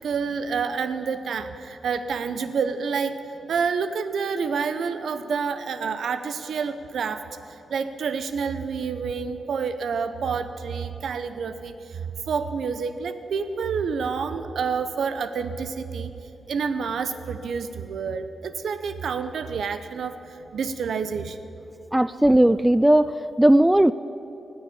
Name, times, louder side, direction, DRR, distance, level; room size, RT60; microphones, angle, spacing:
voice 1, 0.0-3.2 3.5-16.1 16.5-21.4, right 5 dB, 75° right, 10 dB, 0.8 m, -28 dB
voice 2, 21.9-23.9, right 1 dB, 10° right, 15 dB, 0.3 m, -17 dB
18.0 x 7.1 x 9.9 m, 2.9 s
cardioid pair, 85°, 0 cm